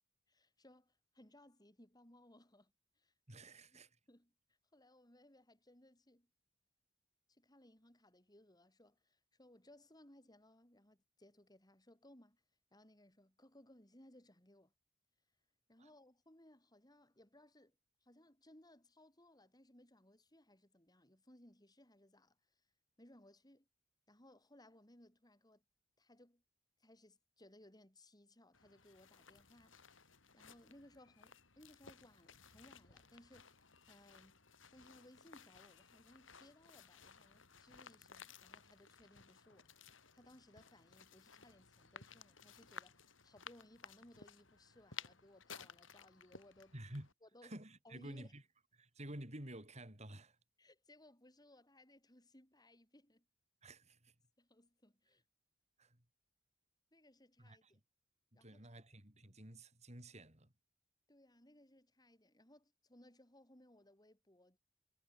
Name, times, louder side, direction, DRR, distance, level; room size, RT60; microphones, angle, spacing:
voice 1, 0.3-3.1 3.7-3.8 4.1-4.3 4.7-6.3 7.3-12.4 12.7-14.7 15.7-17.8 18.0-22.6 23.0-23.7 24.1-25.6 26.0-26.4 26.8-29.8 30.3-34.4 34.7-46.7 47.2-47.6 47.8-48.3 50.6-53.3 54.4-55.2 56.9-57.8 58.3-58.7 61.1-64.6, left 1 dB, 20° left, 6.0 m, -64 dB
voice 2, 3.3-3.9 15.8-15.9 46.7-47.1 47.4-48.4 48.8-50.4 53.6-54.1 55.8-56.0 57.4-57.7 58.3-60.5, right 1 dB, 35° right, 5.6 m, -51 dB
sound 1, 28.5-47.1, left 6 dB, 85° left, 7.2 m, -58 dB
head